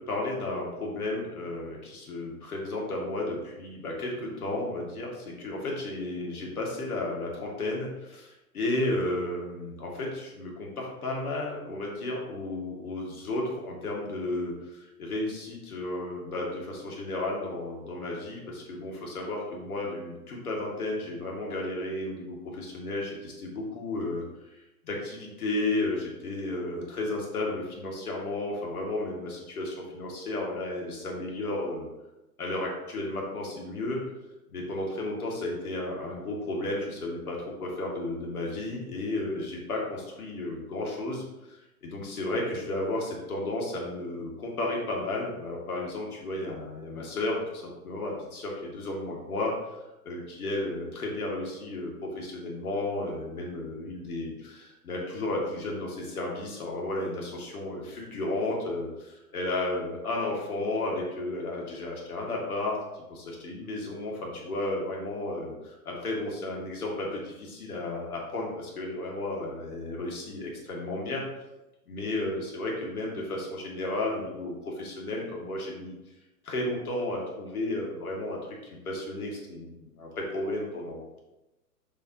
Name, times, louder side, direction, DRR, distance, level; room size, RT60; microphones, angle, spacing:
voice 1, 0.0-31.9 32.4-34.0 34.5-49.8 50.0-71.4 71.9-75.9 76.4-81.2, left 2 dB, 65° left, -1 dB, 2.3 m, -33 dB
7.6 x 5.5 x 2.8 m, 1.0 s
figure-of-eight pair, 120°, 47 cm